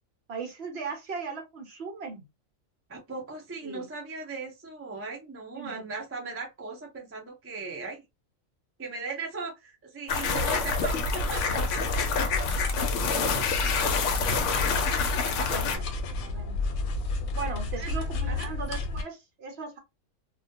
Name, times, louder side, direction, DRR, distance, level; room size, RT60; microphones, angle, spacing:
voice 1, 0.3-2.2 3.6-3.8 5.5-5.8 14.2-14.4 15.4-15.9 16.2-16.6 17.3-19.8, right 4 dB, 55° right, 0.9 m, -38 dB
voice 2, 2.9-8.0 8.8-11.8 14.1-14.7 17.8-18.5, right 4 dB, 20° right, 0.3 m, -38 dB
sound 1, 10.1-15.8, left 4 dB, 70° left, 0.8 m, -27 dB
sound 2, 10.7-19.0, left 2 dB, 90° left, 1.0 m, -32 dB
2.3 x 2.2 x 2.5 m
omnidirectional pair, 1.4 m